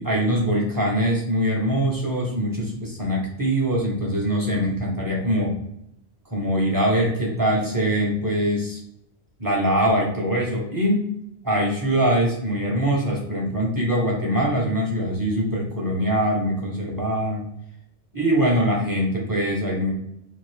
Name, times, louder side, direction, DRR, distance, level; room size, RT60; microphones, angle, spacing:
voice 1, 0.0-5.6 6.3-8.8 9.4-11.0 11.4-17.5 18.1-19.9, equal, 20° right, -4 dB, 0.7 m, -23 dB
2.7 x 2.5 x 3.2 m, 0.78 s
omnidirectional pair, 1.1 m